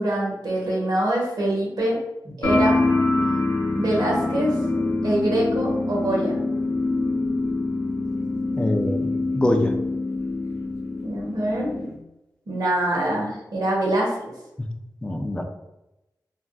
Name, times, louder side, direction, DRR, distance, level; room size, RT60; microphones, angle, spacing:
voice 1, 0.0-2.0 2.2-2.8 3.8-4.6 5.0-6.4 11.0-11.7 12.5-14.3, right 1 dB, 65° right, -4 dB, 1.0 m, -24 dB
sound 1, 2.4-11.9, left 2 dB, 45° left, 0.8 m, -25 dB
voice 2, 8.6-9.1 9.3-9.7 14.6-14.7 15.0-15.4, left 1 dB, 15° left, 4 dB, 0.4 m, -23 dB
3.4 x 2.5 x 2.3 m, 0.93 s
wide cardioid pair, 120°, 7 cm